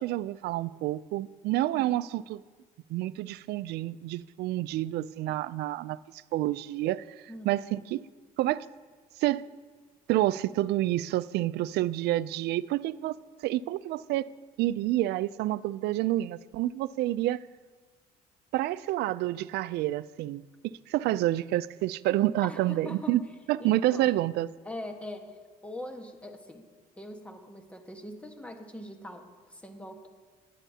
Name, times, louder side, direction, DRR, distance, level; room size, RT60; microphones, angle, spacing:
voice 1, 0.0-2.4 2.9-6.0 6.3-7.0 7.5-8.0 8.4-8.7 9.2-9.5 10.1-13.1 13.4-14.3 14.6-17.4 18.5-23.2 23.5-24.5, right 15 dB, 75° right, 0.4 m, -28 dB
voice 2, 7.3-7.9 20.9-21.1 22.4-23.2 23.6-24.1 24.6-26.7 27.0-30.1, left 1 dB, 5° left, 1.4 m, -43 dB
20.5 x 10.0 x 2.8 m
cardioid pair, 110°, 17 cm